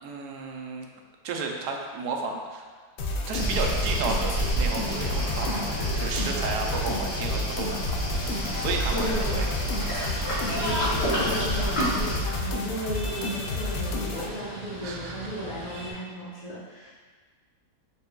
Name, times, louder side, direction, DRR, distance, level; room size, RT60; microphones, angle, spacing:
voice 1, 0.0-0.9 1.2-2.7 3.3-8.0 8.6-9.5 14.8-15.3, right 4 dB, 85° right, 1 dB, 1.2 m, -32 dB
sound 1, 3.0-14.3, left 2 dB, 90° left, 0.5 m, -31 dB
Waves surf, 3.3-12.2, right 1 dB, 65° left, 1.6 m, -29 dB
sound 2, 8.1-15.9, left 1 dB, 65° right, 1.6 m, -38 dB
voice 2, 8.9-9.5 10.5-16.9, equal, 40° left, -8 dB, 0.6 m, -34 dB
5.0 x 4.3 x 2.3 m, 1.5 s
omnidirectional pair, 1.7 m